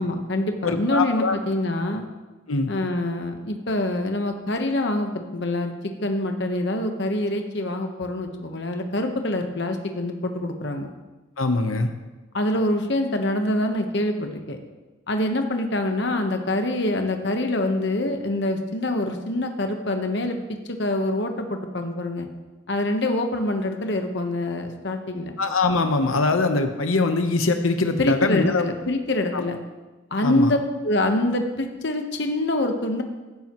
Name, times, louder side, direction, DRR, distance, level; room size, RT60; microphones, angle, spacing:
voice 1, 0.0-2.0 2.7-5.7 6.0-10.9 12.3-14.6 15.1-22.3 22.7-25.3 28.0-29.6 30.1-30.6 30.8-33.0, left 1 dB, 55° left, 5 dB, 1.1 m, -25 dB
voice 2, 0.6-1.4 2.5-2.7 11.4-11.9 25.4-28.6 29.3-29.5 30.2-30.5, left 3 dB, 90° left, 7 dB, 1.0 m, -22 dB
15.5 x 12.0 x 3.0 m, 1.2 s
head